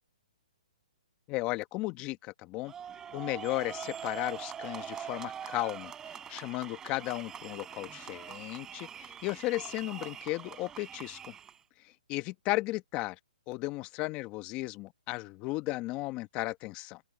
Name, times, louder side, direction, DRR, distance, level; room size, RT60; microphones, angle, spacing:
voice 1, 1.3-2.7 3.1-5.9 6.3-11.3 12.1-13.2 13.5-17.0, left 20 dB, 25° left, 1.3 m, -35 dB
sound 1, 2.7-11.6, right 8 dB, 15° right, 7.5 m, -43 dB
open air
hypercardioid pair, 155°, 4 cm